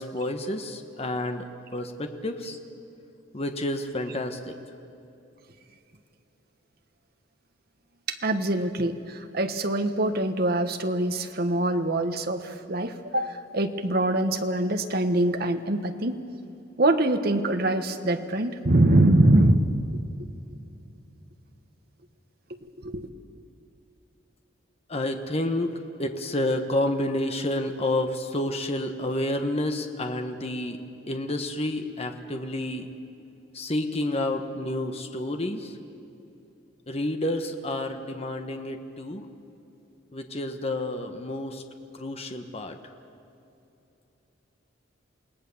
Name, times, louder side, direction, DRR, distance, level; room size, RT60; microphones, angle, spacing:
voice 1, 0.0-1.5 1.7-2.6 3.3-4.6 24.9-30.8 31.1-32.9 33.5-35.7 36.9-39.2 40.1-41.6 41.9-42.8, left 1 dB, 30° left, 6 dB, 1.3 m, -29 dB
voice 2, 8.1-16.2 16.8-19.6 22.5-23.1, right 1 dB, 50° right, 7 dB, 1.2 m, -24 dB
28.0 x 18.5 x 7.1 m, 2.9 s
head